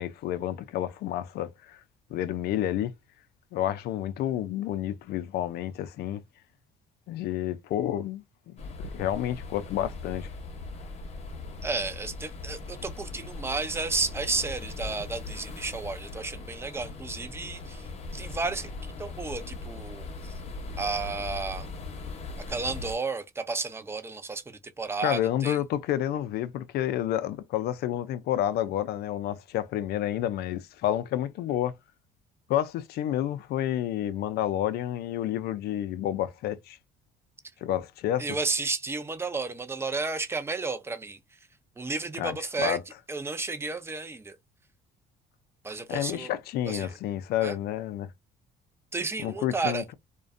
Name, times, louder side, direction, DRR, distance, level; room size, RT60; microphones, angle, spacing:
voice 1, 0.0-1.8 2.1-2.9 3.5-6.2 7.1-10.3 25.0-31.7 32.5-36.8 37.6-38.3 42.2-42.8 45.9-48.1 49.2-49.9, left 12 dB, 70° left, 0.4 m, -30 dB
sound 1, 8.6-23.0, left 3 dB, 40° left, 0.7 m, -39 dB
voice 2, 11.6-18.7 19.0-20.3 20.8-21.7 22.5-25.6 38.2-41.2 41.8-42.8 43.1-44.4 45.6-46.3 46.7-46.9 47.4-47.6 48.9-49.8, right 3 dB, 15° right, 0.4 m, -32 dB
2.4 x 2.1 x 2.4 m
cardioid pair, 110°, 17 cm